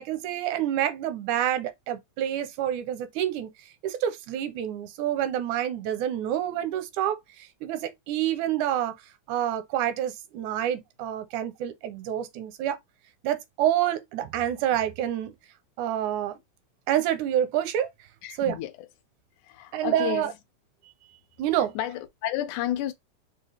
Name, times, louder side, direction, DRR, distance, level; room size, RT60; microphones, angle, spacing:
voice 1, 0.0-3.5 3.8-9.0 9.3-12.8 13.2-15.3 15.8-16.3 16.9-17.9 18.4-18.6 19.7-20.3 21.4-21.7, right 11 dB, 85° right, 2.0 m, -28 dB
voice 2, 18.2-18.7 19.4-20.3 21.8-22.9, left 13 dB, 90° left, 2.1 m, -31 dB
4.7 x 2.2 x 3.2 m
omnidirectional pair, 3.4 m